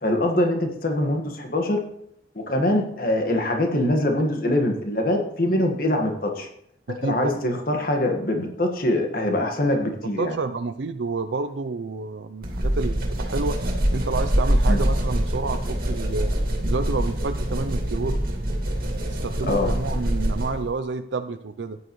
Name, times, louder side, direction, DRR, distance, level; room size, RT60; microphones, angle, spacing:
voice 1, 0.0-1.8 2.3-6.5 6.9-10.4 14.7-14.8 19.4-19.7, left 1 dB, 50° left, 3 dB, 1.6 m, -23 dB
voice 2, 10.2-13.6 13.9-16.3 16.6-18.2 19.1-21.8, right 4 dB, 80° right, 9 dB, 0.5 m, -29 dB
sound 1, 12.4-20.7, equal, 50° right, 2.1 m, -24 dB
14.0 x 9.9 x 3.1 m, 0.70 s
head